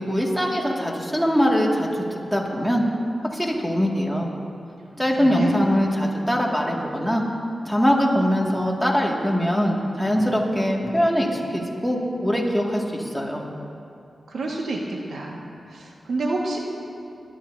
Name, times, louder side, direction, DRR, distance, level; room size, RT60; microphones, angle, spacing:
voice 1, 0.0-2.8 3.3-4.3 4.9-7.2 7.6-13.4, equal, ahead, -2 dB, 2.1 m, -22 dB
voice 2, 5.2-5.5 14.3-15.4 15.7-16.6, right 2 dB, 85° right, -2 dB, 1.6 m, -28 dB
22.5 x 12.5 x 2.7 m, 2.5 s
cardioid pair, 70°, 0 cm